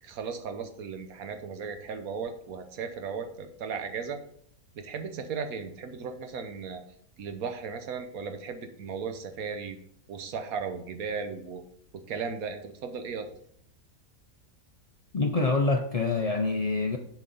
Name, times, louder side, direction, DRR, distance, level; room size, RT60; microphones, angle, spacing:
voice 1, 0.0-4.2 4.8-6.8 7.2-9.8 10.1-11.6 11.9-13.3, right 5 dB, 75° right, 7 dB, 1.3 m, -36 dB
voice 2, 15.1-17.0, left 3 dB, 70° left, 3 dB, 0.3 m, -26 dB
7.1 x 6.2 x 4.0 m, 0.64 s
omnidirectional pair, 1.5 m